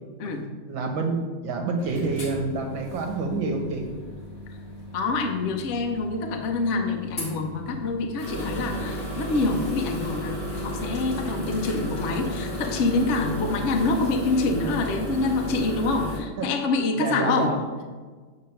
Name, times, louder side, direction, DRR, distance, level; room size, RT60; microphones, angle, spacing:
voice 1, 0.2-3.8 16.4-16.5 17.0-17.6, right 3 dB, 70° right, 3 dB, 1.6 m, -28 dB
sound 1, 1.8-16.2, equal, 35° left, 1.6 m, -34 dB
voice 2, 4.9-17.6, left 3 dB, 80° left, 4 dB, 0.6 m, -26 dB
7.6 x 3.7 x 5.7 m, 1.4 s
omnidirectional pair, 2.3 m